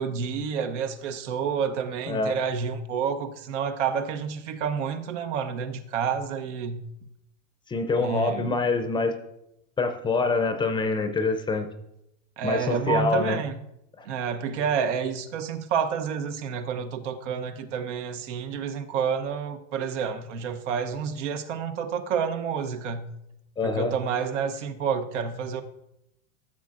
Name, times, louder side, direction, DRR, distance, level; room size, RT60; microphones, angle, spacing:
voice 1, 0.0-6.8 8.0-8.6 12.4-13.6 14.0-23.1 23.6-25.6, right 7 dB, 85° right, 1.0 m, -29 dB
voice 2, 7.7-9.2 9.8-11.7 12.4-13.4 14.0-14.1 23.6-23.9, left 3 dB, 15° left, 0.5 m, -25 dB
14.5 x 7.4 x 2.5 m
supercardioid pair, 140°, 35 cm